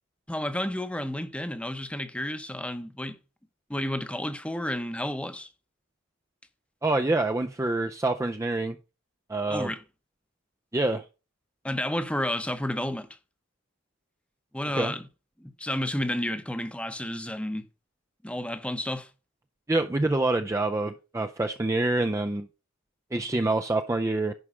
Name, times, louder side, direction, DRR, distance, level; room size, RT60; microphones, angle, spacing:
voice 1, 0.3-3.2 3.7-5.5 9.5-9.8 11.6-13.1 14.5-15.1 15.4-17.6 18.2-19.1, left 1 dB, 5° left, 0.8 m, -31 dB
voice 2, 6.8-8.8 9.3-9.7 10.7-11.0 14.7-14.9 19.7-22.5 23.1-24.3, right 2 dB, 15° right, 0.4 m, -26 dB
11.0 x 4.9 x 5.4 m
head